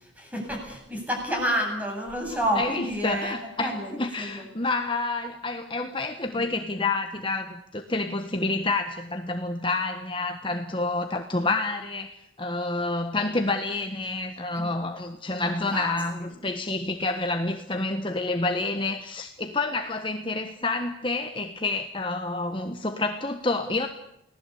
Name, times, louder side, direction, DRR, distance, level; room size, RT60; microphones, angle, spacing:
voice 1, 0.2-4.4 6.3-6.5 14.5-14.7 15.4-16.0, equal, 10° right, 1 dB, 8.0 m, -30 dB
voice 2, 2.5-23.9, left 2 dB, 25° left, 6 dB, 1.3 m, -28 dB
29.5 x 18.5 x 8.5 m, 0.79 s
head